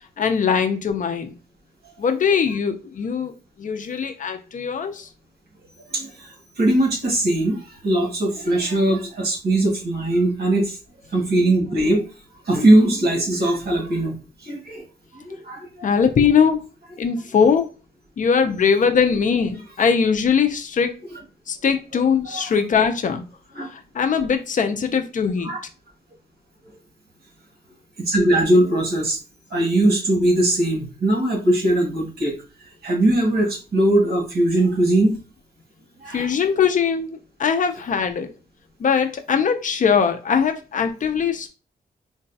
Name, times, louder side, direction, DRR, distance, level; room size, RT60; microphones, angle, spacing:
voice 1, 0.2-1.3 2.0-3.3 3.6-5.1 15.8-16.6 17.0-17.7 18.2-20.9 21.5-23.2 23.7-25.5 36.1-38.3 38.8-41.5, left 6 dB, 50° left, 7 dB, 0.5 m, -21 dB
voice 2, 5.9-10.8 11.1-12.0 12.4-14.2 14.4-14.8 15.1-15.9 21.9-22.0 22.2-22.5 23.5-23.7 25.4-25.6 28.0-29.2 29.5-32.3 32.8-35.2 36.0-36.3, right 1 dB, 70° right, -1 dB, 1.5 m, -20 dB
3.8 x 2.2 x 2.7 m, 0.33 s
wide cardioid pair, 130°, 17 cm